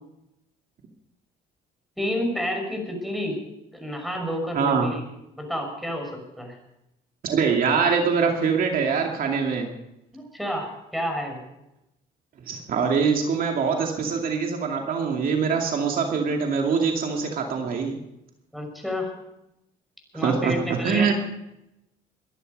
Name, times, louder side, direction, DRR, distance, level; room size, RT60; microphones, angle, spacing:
voice 1, 2.0-3.4 3.7-5.0 5.3-6.6 10.1-11.4 18.5-19.1 20.1-21.1, equal, ahead, 3 dB, 5.8 m, -30 dB
voice 2, 4.5-4.9 7.2-9.7 12.5-18.0 20.2-21.1, right 5 dB, 55° right, 2 dB, 2.4 m, -23 dB
22.0 x 11.5 x 5.3 m, 0.87 s
cardioid pair, 110°, 17 cm